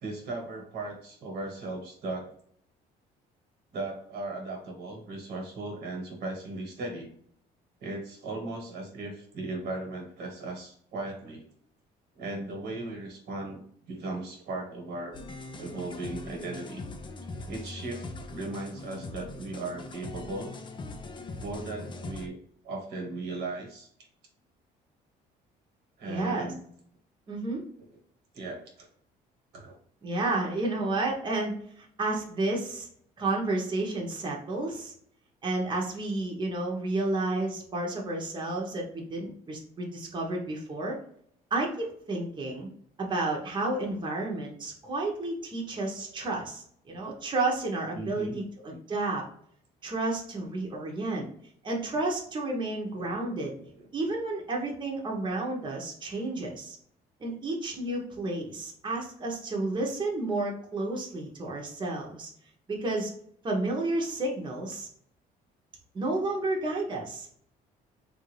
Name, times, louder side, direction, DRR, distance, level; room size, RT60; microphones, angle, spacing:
voice 1, 0.0-2.3 3.7-7.1 7.8-11.4 12.1-13.6 13.9-15.2 15.6-16.8 17.5-20.6 21.4-22.4 22.6-23.9 26.0-26.6 27.8-28.0 28.3-28.9 29.5-29.8 47.9-48.5 52.9-53.2 53.6-53.9, right 2 dB, 80° right, 1 dB, 1.3 m, -37 dB
sound 1, 15.1-22.3, left 2 dB, 30° left, 0.4 m, -41 dB
voice 2, 26.0-26.5 27.3-27.6 30.0-32.9 33.2-34.9 35.4-41.0 41.5-42.7 43.0-49.2 49.8-51.3 51.6-53.5 53.9-56.8 57.2-62.3 62.7-63.1 63.4-64.9 65.9-67.3, right 2 dB, 25° right, -1 dB, 0.9 m, -31 dB
3.6 x 2.5 x 3.2 m, 0.65 s
cardioid pair, 110°, 17 cm